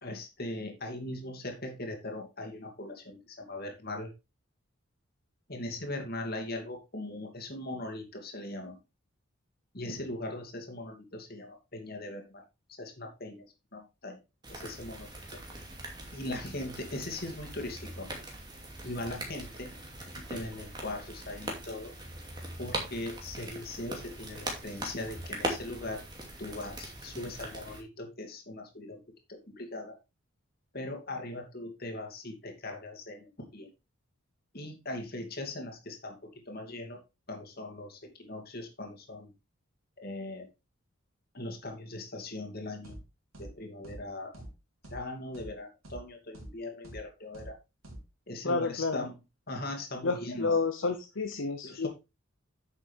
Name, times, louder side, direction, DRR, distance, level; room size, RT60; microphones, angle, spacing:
voice 1, 0.0-4.1 5.5-8.8 9.7-12.4 12.8-13.5 13.7-14.2 14.5-15.4 16.1-18.1 18.8-19.7 20.1-21.9 22.6-26.0 26.4-29.0 29.3-30.0 30.7-33.7 34.5-37.0 37.3-39.3 40.0-40.5 41.3-43.0 43.4-44.3 44.9-47.6 48.3-49.1 49.5-50.6 51.6-51.9, left 1 dB, 45° left, 3 dB, 2.6 m, -40 dB
sound 1, 14.4-27.8, right 1 dB, 20° right, 2.6 m, -41 dB
sound 2, 42.8-43.0 43.3-43.5 43.8-44.0 44.3-44.5 44.8-45.0 45.3-45.5 45.8-46.0 46.3-46.5 46.8-47.0 47.3-47.5 47.8-48.0, right 1 dB, 80° right, 3.8 m, -45 dB
voice 2, 48.4-49.1 50.0-51.9, left 4 dB, 65° left, 6 dB, 0.8 m, -30 dB
9.7 x 7.2 x 3.5 m, 0.26 s
head